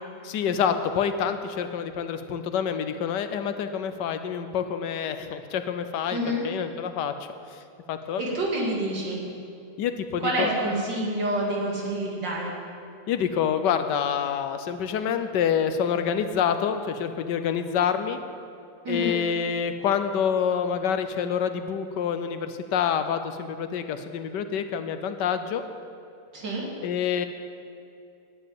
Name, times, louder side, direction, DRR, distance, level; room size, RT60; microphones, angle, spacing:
voice 1, 0.2-6.2 6.4-7.1 7.5-7.6 7.9-8.2 9.8-10.5 13.1-18.2 18.9-25.6 26.8-27.3, left 7 dB, 75° left, 9 dB, 1.3 m, -27 dB
voice 2, 6.1-6.4 8.2-9.2 10.2-12.5 18.8-19.2 26.3-26.6, right 1 dB, 80° right, -3 dB, 3.1 m, -27 dB
10.5 x 7.6 x 9.2 m, 2.5 s
omnidirectional pair, 1.9 m